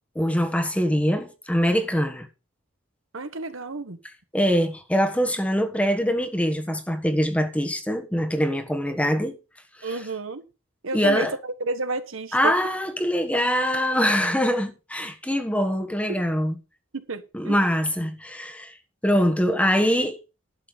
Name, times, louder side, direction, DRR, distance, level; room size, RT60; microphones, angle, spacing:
voice 1, 0.1-2.3 4.3-9.4 10.9-11.3 12.3-16.6 17.3-18.8 19.0-20.2, equal, 5° left, 1.3 m, -23 dB
voice 2, 3.1-4.0 9.8-10.4 10.8-12.6 16.1-16.2 16.9-17.6, right 3 dB, 85° right, 1.4 m, -31 dB
11.5 x 7.9 x 5.2 m
head